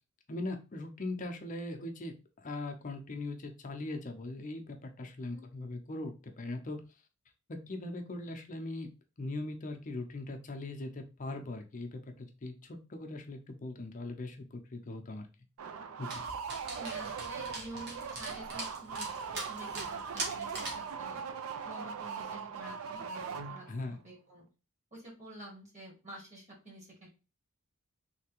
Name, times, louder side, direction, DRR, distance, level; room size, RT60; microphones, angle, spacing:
voice 1, 0.3-6.8 7.5-8.9 9.2-15.3 16.0-16.2 23.7-24.0, left 2 dB, 35° left, 4 dB, 0.6 m, -40 dB
sound 1, 15.6-23.9, right 6 dB, 75° right, 0.4 m, -40 dB
Dog, 16.1-20.9, right 2 dB, 50° right, 1.1 m, -42 dB
voice 2, 16.7-19.1 19.3-21.2 21.6-24.4 24.9-27.1, right 1 dB, 35° right, -1 dB, 1.4 m, -48 dB
3.3 x 2.8 x 2.9 m, 0.32 s
head